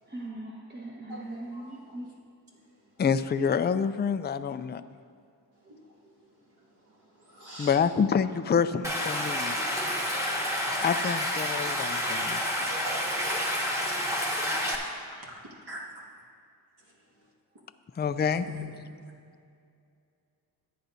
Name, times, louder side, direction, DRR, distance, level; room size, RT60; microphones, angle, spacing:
voice 1, 0.1-2.1 5.6-5.7, right 1 dB, 25° right, -5 dB, 1.4 m, -40 dB
voice 2, 1.1-2.0 5.7-5.9 7.2-7.8 12.7-13.5 14.1-14.8 15.1-15.4 15.7-15.8 18.5-18.6, equal, 70° right, -4 dB, 2.1 m, -44 dB
voice 3, 3.0-4.8 7.6-9.5 10.8-12.4 18.0-18.5, left 6 dB, 25° left, 11 dB, 0.3 m, -27 dB
Stream, 8.8-14.8, left 1 dB, 5° right, 1.6 m, -29 dB
14.5 x 9.3 x 2.7 m, 2.4 s
cardioid pair, 50°, 41 cm